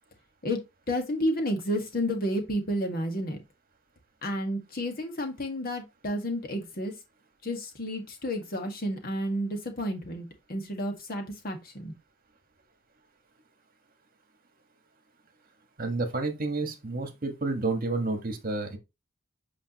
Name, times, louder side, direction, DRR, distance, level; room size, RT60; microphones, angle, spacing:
voice 1, 0.9-3.4 4.2-6.9 7.4-11.9, equal, 50° left, 1.7 m, -31 dB
voice 2, 15.8-18.8, right 3 dB, 50° right, 1.5 m, -30 dB
8.5 x 5.0 x 3.0 m
head